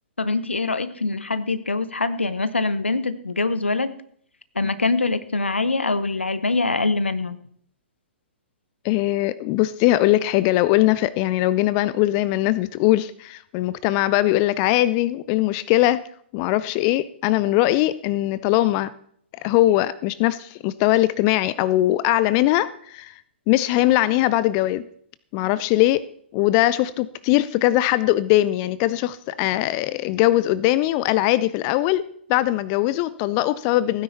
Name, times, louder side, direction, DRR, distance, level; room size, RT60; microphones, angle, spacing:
voice 1, 0.2-4.0 4.5-7.4, left 3 dB, 80° left, 0.9 m, -24 dB
voice 2, 8.8-16.0 16.3-18.9 19.4-23.2 23.5-24.9 25.3-26.0 26.3-34.0, left 15 dB, 30° left, 0.4 m, -21 dB
16.0 x 9.7 x 4.2 m
figure-of-eight pair, 120°, 6 cm